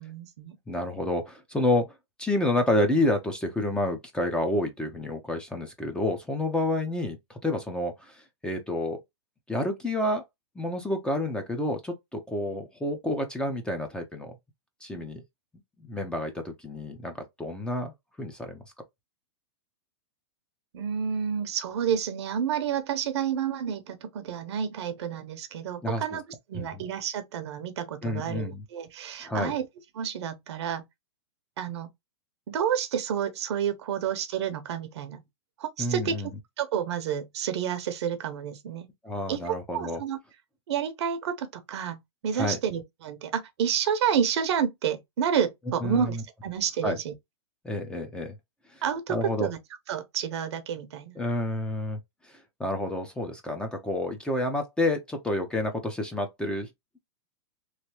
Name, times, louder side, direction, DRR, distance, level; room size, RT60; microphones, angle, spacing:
voice 1, 0.0-0.6 14.9-15.0 20.7-26.2 26.5-29.7 30.0-30.9 31.6-31.9 32.5-35.2 35.6-36.3 36.6-38.9 39.3-40.2 40.7-46.2 46.4-47.1 48.8-49.6 49.9-51.1, right 8 dB, 65° right, 0.8 m, -30 dB
voice 2, 0.7-1.9 2.2-9.0 9.5-10.2 10.5-14.3 14.8-15.2 15.8-18.6 25.8-26.2 26.5-26.8 28.0-28.6 29.2-29.5 35.8-36.3 39.0-40.0 42.3-42.6 45.8-46.2 46.8-47.0 47.6-48.3 48.7-48.8 49.1-49.5 51.2-52.0 52.2-52.3 52.6-56.7, left 1 dB, 5° left, 0.7 m, -29 dB
3.2 x 2.7 x 3.0 m
hypercardioid pair, 135°, 15 cm